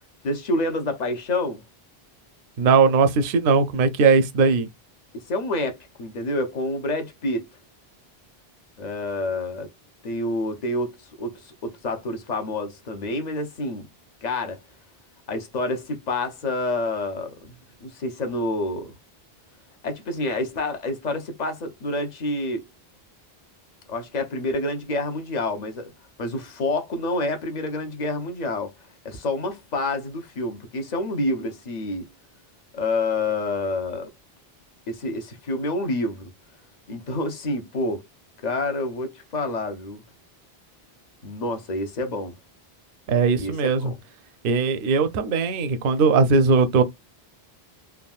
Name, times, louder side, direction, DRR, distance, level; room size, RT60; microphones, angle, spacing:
voice 1, 0.2-1.6 5.1-7.4 8.8-9.7 10.0-13.9 14.2-14.6 15.3-17.5 17.8-19.0 19.8-22.6 23.9-25.9 26.2-28.7 29.0-32.0 32.7-34.1 34.9-36.3 36.9-38.0 38.4-40.0 41.2-42.4 43.4-44.0, left 2 dB, 45° left, 0.7 m, -28 dB
voice 2, 2.6-4.7 43.1-43.9 44.4-46.8, right 5 dB, 65° right, 0.7 m, -19 dB
3.5 x 2.2 x 2.3 m
omnidirectional pair, 1.1 m